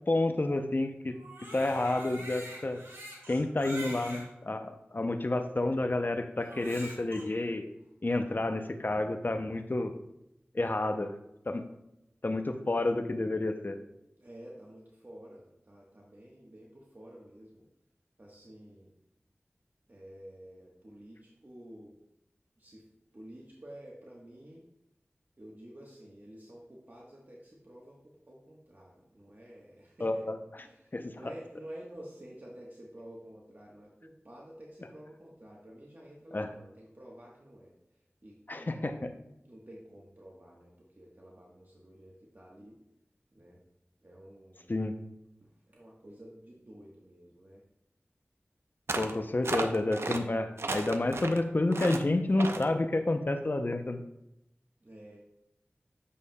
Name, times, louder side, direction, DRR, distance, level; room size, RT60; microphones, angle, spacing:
voice 1, 0.1-1.2 1.4-2.8 3.3-7.7 8.0-9.9 10.5-11.1 11.5-11.7 12.2-13.8 30.0-30.4 30.9-31.1 36.3-36.5 38.5-39.1 44.7-44.9 49.0-54.0, left 2 dB, 45° left, 8 dB, 0.6 m, -30 dB
Crying sobbing, 1.1-4.3 5.0-5.1 6.4-7.2, right 1 dB, 85° right, 2.3 m, -45 dB
voice 2, 14.2-17.7 18.2-18.9 19.9-21.9 22.6-22.8 23.1-24.6 25.4-30.3 30.6-37.7 38.2-38.9 39.4-42.8 43.3-43.6 44.0-44.7 45.4-47.6 54.8-55.2, right 1 dB, 45° right, -3 dB, 1.2 m, -51 dB
sound 1, 48.9-49.2 49.4-50.2 50.6-51.4 51.7-52.0 52.4-52.7, right 3 dB, 70° right, 0.6 m, -34 dB
8.4 x 7.1 x 2.3 m, 0.86 s
wide cardioid pair, 40°, 4 cm